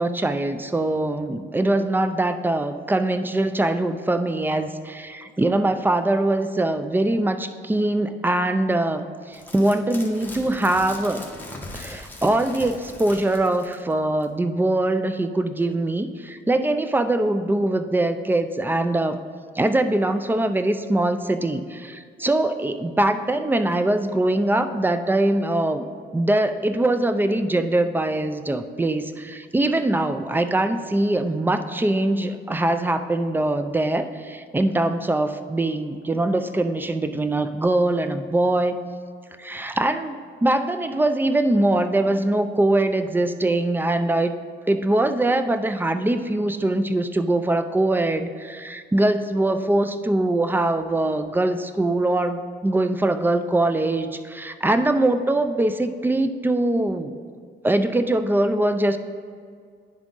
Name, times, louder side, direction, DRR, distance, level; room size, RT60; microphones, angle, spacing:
voice 1, 0.0-11.3 11.7-19.2 19.6-25.8 26.1-38.8 39.4-44.3 44.7-57.2 57.6-59.0, right 1 dB, 10° right, 10 dB, 0.4 m, -22 dB
sound 1, 9.3-13.9 14.2-14.3, left 1 dB, 10° left, 1.2 m, -40 dB
10.5 x 3.6 x 3.8 m, 2.1 s
cardioid pair, 90°, 20 cm